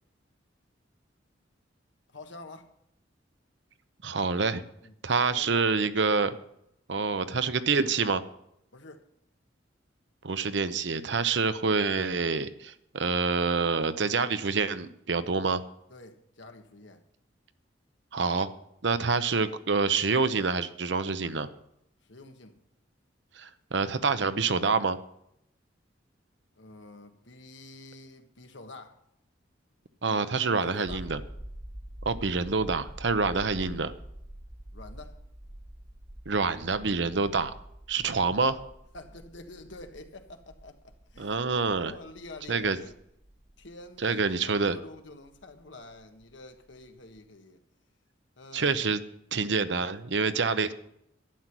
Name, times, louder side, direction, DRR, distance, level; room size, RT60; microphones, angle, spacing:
voice 1, 2.1-2.7 4.8-5.6 8.7-9.0 15.9-17.0 22.0-22.5 26.6-29.0 30.1-30.2 30.5-31.1 34.7-35.2 37.9-38.2 38.9-42.9 43.6-47.6 48.4-48.8, left 2 dB, 75° left, 6 dB, 1.5 m, -48 dB
voice 2, 4.0-4.6 5.0-6.3 6.9-8.2 10.2-15.6 18.1-18.5 18.8-21.5 23.4-25.0 30.0-31.2 32.0-33.9 36.3-37.6 37.9-38.6 41.2-41.9 42.5-42.8 44.0-44.8 48.5-49.0 49.3-50.7, right 4 dB, 65° right, 12 dB, 0.8 m, -27 dB
sound 1, 30.8-46.9 47.2-47.3, right 1 dB, 30° right, 0.9 m, -46 dB
11.5 x 9.7 x 6.1 m, 0.75 s
head